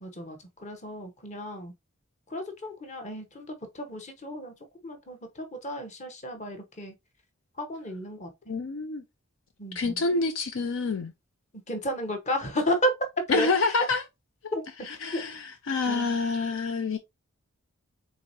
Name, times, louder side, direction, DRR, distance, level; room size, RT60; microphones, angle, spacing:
voice 1, 0.0-1.7 2.3-3.5 3.7-4.5 4.8-6.9 7.6-8.3 9.6-10.0 11.7-12.9 13.3-13.5 14.5-14.6 15.1-15.2 15.9-16.2, equal, 30° left, 1.0 m, -32 dB
voice 2, 8.5-9.0 9.7-11.1 13.3-14.0 14.4-14.5 14.9-17.0, left 3 dB, 65° left, 0.5 m, -27 dB
4.8 x 3.6 x 2.7 m
head